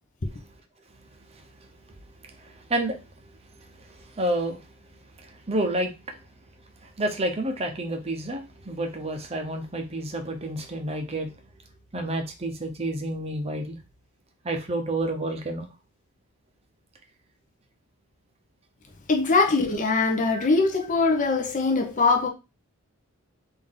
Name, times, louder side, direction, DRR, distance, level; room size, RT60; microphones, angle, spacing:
voice 1, 1.0-2.0 2.2-4.7 5.2-6.2 6.8-11.4 11.9-13.8 14.4-15.7 20.3-20.5, right 1 dB, 30° right, 0.7 m, -30 dB
voice 2, 19.1-22.3, left 3 dB, 35° left, 0.6 m, -22 dB
3.7 x 2.6 x 3.6 m
head